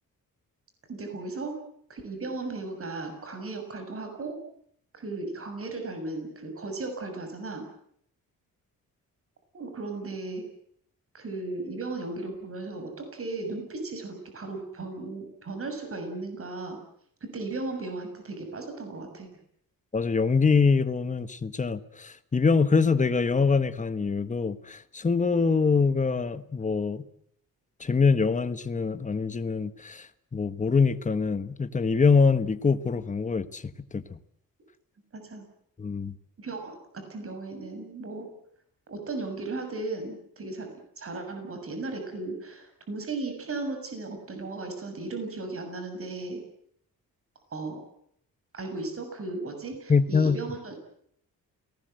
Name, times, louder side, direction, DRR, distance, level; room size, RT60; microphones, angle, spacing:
voice 1, 0.9-1.6 1.9-4.4 4.9-7.7 9.5-10.4 11.1-16.8 17.3-19.3 35.1-35.5 36.4-38.3 38.9-40.7 41.0-46.4 47.5-47.8 48.5-50.7, right 3 dB, 40° right, 5 dB, 6.5 m, -36 dB
voice 2, 19.9-27.0 27.8-34.2 35.8-36.1 49.9-50.4, left 5 dB, 20° left, 12 dB, 1.3 m, -24 dB
29.0 x 19.0 x 7.9 m, 0.70 s
wide cardioid pair, 150°, 34 cm